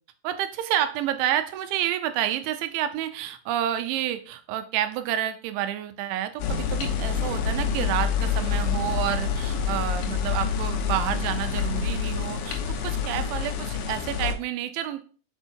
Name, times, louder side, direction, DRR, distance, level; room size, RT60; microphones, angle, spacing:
voice 1, 0.2-15.0, right 11 dB, 85° right, 9 dB, 3.1 m, -29 dB
sound 1, 6.4-14.3, left 6 dB, 80° left, 2.1 m, -27 dB
6.0 x 5.5 x 4.5 m, 0.40 s
omnidirectional pair, 5.4 m